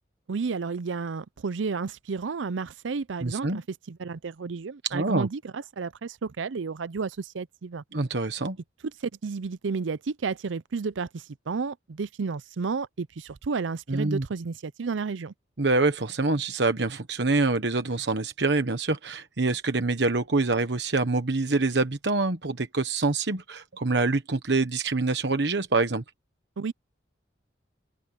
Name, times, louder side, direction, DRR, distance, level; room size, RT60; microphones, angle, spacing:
voice 1, 0.3-7.8 9.0-15.3 26.6-26.7, right 4 dB, 90° right, 0.5 m, -32 dB
voice 2, 3.2-3.6 4.8-5.3 7.9-8.6 13.9-14.2 15.6-26.0, right 3 dB, 65° right, 1.2 m, -25 dB
open air
head